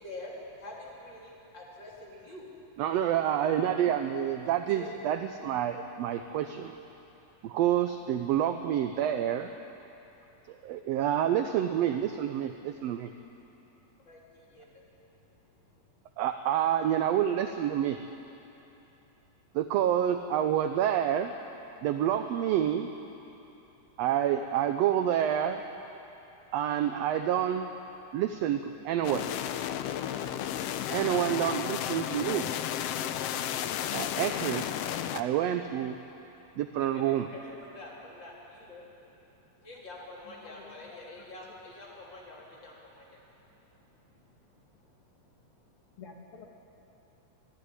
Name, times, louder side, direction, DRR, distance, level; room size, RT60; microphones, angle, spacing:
voice 1, 0.0-2.5 4.4-4.9 14.1-14.8 15.2-15.3 36.8-46.0, left 1 dB, 35° left, -4 dB, 3.8 m, -48 dB
voice 2, 2.8-6.8 7.4-9.5 10.5-13.1 16.2-18.0 19.5-21.3 21.8-22.9 24.0-25.6 26.5-27.7 28.1-29.3 30.9-32.5 33.9-34.6 35.1-36.0 36.6-37.3, right 10 dB, 75° right, 8 dB, 1.6 m, -28 dB
sound 1, 29.0-35.2, left 10 dB, 80° left, 1.4 m, -33 dB
voice 3, 40.2-41.3 46.0-46.5, left 5 dB, 55° left, 0 dB, 2.1 m, -50 dB
24.5 x 11.5 x 9.6 m, 3.0 s
omnidirectional pair, 3.4 m